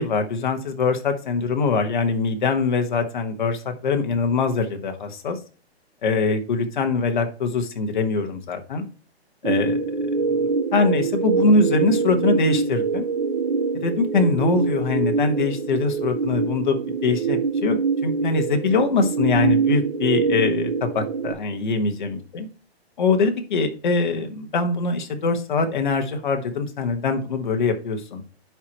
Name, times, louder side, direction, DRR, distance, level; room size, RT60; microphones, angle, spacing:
voice 1, 0.0-5.4 6.0-8.8 9.4-9.8 10.2-13.1 13.8-17.8 18.0-22.5 23.0-28.2, left 4 dB, 45° left, 5 dB, 1.4 m, -23 dB
sound 1, 9.4-21.3, right 5 dB, 50° right, 0.8 m, -24 dB
10.5 x 4.7 x 3.0 m, 0.37 s
hypercardioid pair, 175°, 32 cm